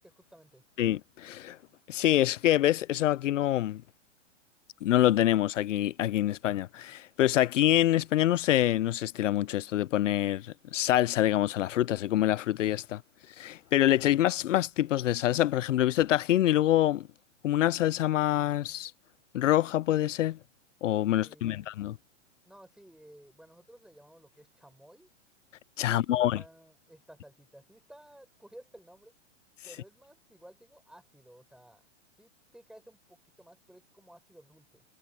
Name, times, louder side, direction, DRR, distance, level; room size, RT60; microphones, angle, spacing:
voice 1, 0.0-0.6 21.2-21.7 22.4-25.1 25.8-29.1 29.6-31.8 32.2-34.8, right 1 dB, ahead, 6.0 m, -55 dB
voice 2, 0.8-1.6 1.9-3.8 4.8-13.0 13.4-17.0 17.4-18.9 19.3-20.4 20.8-22.0 25.8-26.4, left 13 dB, 80° left, 0.7 m, -26 dB
hypercardioid pair, 130°, 37 cm